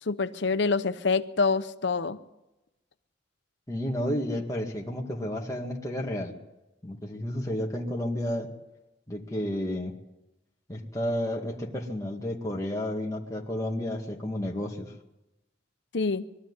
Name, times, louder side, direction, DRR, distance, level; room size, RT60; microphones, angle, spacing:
voice 1, 0.0-2.2 15.9-16.2, left 4 dB, 65° left, 11 dB, 0.9 m, -26 dB
voice 2, 3.7-6.3 6.8-8.5 9.1-9.9 10.7-14.9, left 1 dB, 20° left, -2 dB, 2.2 m, -31 dB
22.0 x 13.0 x 9.8 m, 0.94 s
head